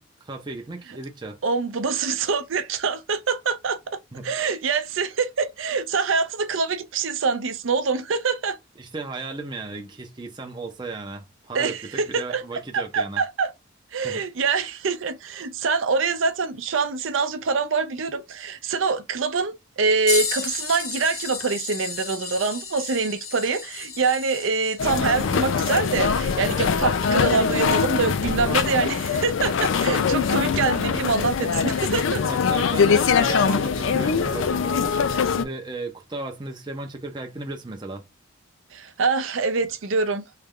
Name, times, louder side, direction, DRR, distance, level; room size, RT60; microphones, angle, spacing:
voice 1, 0.0-1.4 4.1-4.3 8.8-13.2 14.0-14.2 32.3-34.9 35.2-38.0, right 3 dB, 20° right, 0.5 m, -35 dB
voice 2, 1.4-3.8 4.2-8.6 11.5-12.4 12.7-13.5 13.9-32.2 38.7-40.2, right 4 dB, 70° right, 0.5 m, -25 dB
sound 1, 20.1-28.3 29.0-29.1 31.4-31.5 32.5-32.7 33.7-33.8, left 5 dB, 85° left, 1.4 m, -34 dB
sound 2, 24.8-35.5, left 6 dB, 70° left, 0.4 m, -22 dB
3.2 x 2.3 x 3.6 m
head